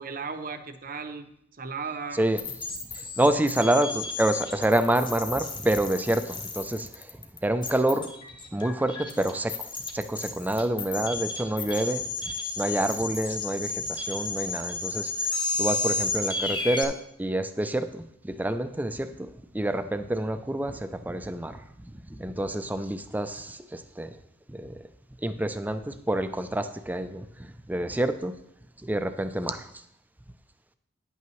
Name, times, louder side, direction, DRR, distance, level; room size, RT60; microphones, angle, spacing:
voice 1, 0.0-2.2, right 5 dB, 45° right, 7 dB, 0.7 m, -36 dB
sound 1, 2.4-16.8, left 3 dB, 25° left, 1.0 m, -32 dB
voice 2, 2.9-7.1 7.4-8.1 8.5-19.3 19.5-21.6 22.1-24.1 24.5-24.7 25.2-28.3 28.8-29.7, right 1 dB, 10° right, 10 dB, 0.4 m, -28 dB
10.0 x 8.4 x 3.1 m, 0.76 s
head